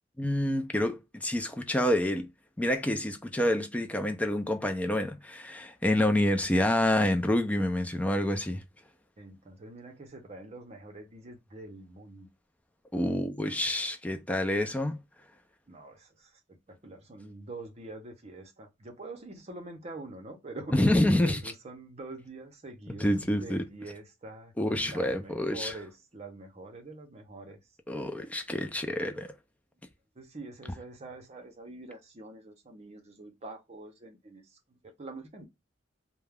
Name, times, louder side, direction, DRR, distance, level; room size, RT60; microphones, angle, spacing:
voice 1, 0.2-2.3 2.6-8.6 12.9-15.0 20.7-21.4 23.0-23.6 24.6-25.7 27.9-29.3, left 1 dB, 10° left, 0.4 m, -27 dB
voice 2, 9.2-12.3 15.7-20.8 21.1-27.6 30.2-35.5, right 2 dB, 35° right, 0.7 m, -45 dB
2.3 x 2.1 x 3.3 m
head